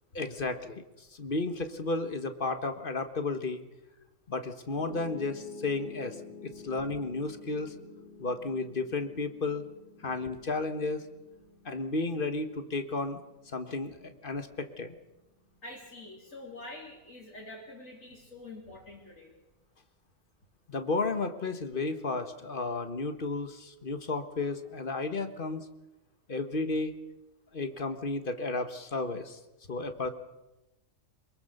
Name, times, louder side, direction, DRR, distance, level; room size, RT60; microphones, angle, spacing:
voice 1, 0.1-0.8 1.1-3.6 4.3-6.2 6.4-7.7 8.2-9.6 10.0-11.0 11.6-13.2 13.5-14.9 20.7-25.7 26.3-27.0 27.5-29.4 29.7-30.1, left 3 dB, 40° left, 8 dB, 1.6 m, -33 dB
Piano, 4.8-16.9, left 4 dB, 70° left, 6.2 m, -50 dB
voice 2, 15.6-19.3, left 2 dB, 85° left, -4 dB, 4.1 m, -46 dB
24.0 x 22.0 x 6.7 m, 0.98 s
omnidirectional pair, 1.4 m